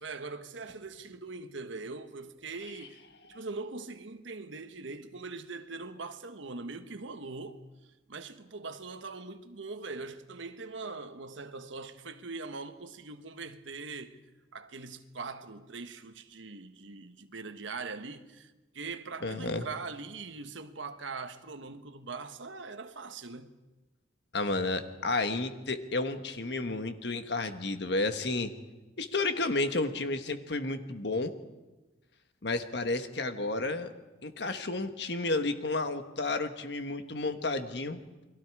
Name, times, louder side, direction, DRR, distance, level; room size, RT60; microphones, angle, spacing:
voice 1, 0.0-3.0 3.3-7.7 8.1-14.2 14.5-23.5, right 3 dB, 80° right, 1.3 m, -42 dB
voice 2, 19.2-19.6 24.3-28.5 29.0-31.3 32.4-33.9 34.2-38.0, left 2 dB, 60° left, 1.4 m, -31 dB
29.0 x 22.0 x 4.8 m
head